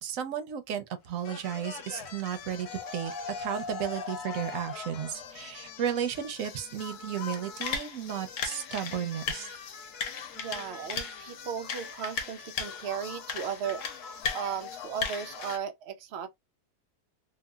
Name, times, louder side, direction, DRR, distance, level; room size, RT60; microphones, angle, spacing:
voice 1, 0.0-2.7 2.9-9.5, right 9 dB, 65° right, 0.9 m, -34 dB
sound 1, 1.2-15.6, left 6 dB, 75° left, 1.2 m, -38 dB
voice 2, 10.4-13.9 14.3-16.3, right 8 dB, 85° right, 0.5 m, -36 dB
2.9 x 2.4 x 2.2 m
omnidirectional pair, 1.7 m